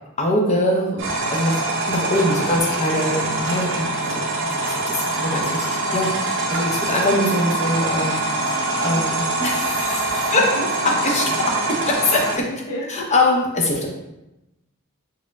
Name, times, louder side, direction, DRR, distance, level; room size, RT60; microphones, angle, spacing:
voice 1, 0.2-10.5 10.8-12.5 12.9-13.9, left 1 dB, 35° left, -1 dB, 0.7 m, -23 dB
sound 1, 1.0-12.4, right 2 dB, 65° right, 0.7 m, -24 dB
sound 2, 2.1-2.5 3.4-3.8 4.6-4.9 6.0-6.4, right 1 dB, 15° right, 1.4 m, -38 dB
voice 2, 10.3-10.7 12.5-12.9, equal, 75° left, -3 dB, 0.6 m, -33 dB
4.3 x 2.1 x 3.5 m, 0.94 s
head